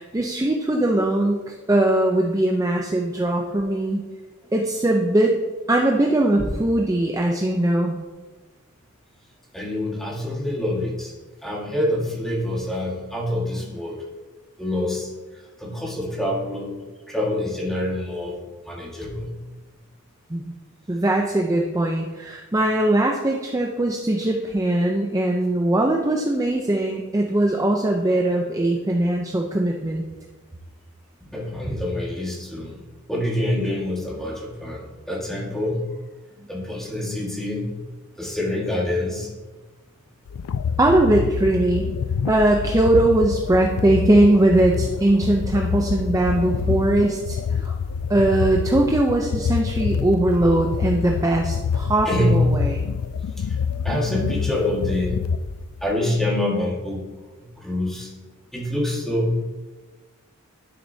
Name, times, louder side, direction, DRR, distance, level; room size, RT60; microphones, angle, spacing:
voice 1, 0.0-4.0 4.5-5.4 5.7-8.0 20.3-20.5 20.9-30.0 40.8-41.9 42.3-47.7 48.1-52.8, right 1 dB, 15° right, 1 dB, 0.6 m, -20 dB
voice 2, 9.5-11.1 11.4-14.0 14.6-15.1 15.6-16.7 17.1-19.4 31.2-32.8 33.1-35.8 36.5-37.8 38.2-39.3 52.0-52.4 53.4-53.6 53.8-55.2 55.8-57.0 57.4-58.1 58.5-59.4, left 1 dB, ahead, -4 dB, 1.7 m, -26 dB
sound 1, 40.3-55.9, left 6 dB, 80° left, 0.4 m, -27 dB
11.5 x 6.5 x 2.8 m, 1.2 s
head